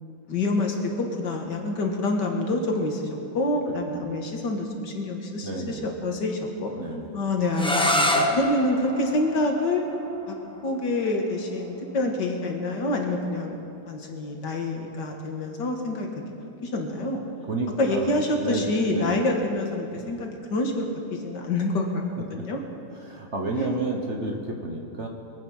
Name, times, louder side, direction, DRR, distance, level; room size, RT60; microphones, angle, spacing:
voice 1, 0.3-6.7 7.1-9.8 10.3-10.4 10.6-16.1 16.6-17.2 17.8-22.0 22.3-22.6 23.5-23.8, left 2 dB, 65° left, 2 dB, 2.1 m, -27 dB
voice 2, 5.4-5.9 6.8-7.2 8.3-8.4 17.5-18.2 18.4-19.2 20.0-20.2 22.4-22.5 23.0-25.1, right 2 dB, 40° right, 1 dB, 1.3 m, -31 dB
sound 1, 7.5-13.3, left 1 dB, 5° left, 0.6 m, -29 dB
23.5 x 9.0 x 5.6 m, 2.7 s
omnidirectional pair, 2.1 m